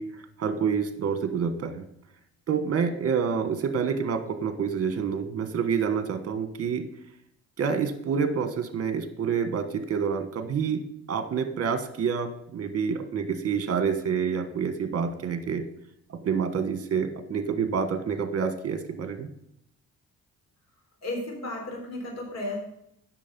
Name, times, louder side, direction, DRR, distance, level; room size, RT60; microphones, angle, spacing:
voice 1, 0.0-1.8 2.5-6.8 7.6-10.8 11.1-15.6 16.1-19.3, right 6 dB, 50° right, 9 dB, 1.4 m, -28 dB
voice 2, 21.0-22.6, left 2 dB, 60° left, 1 dB, 3.7 m, -33 dB
8.4 x 6.3 x 5.3 m, 0.76 s
cardioid pair, 90°, 30 cm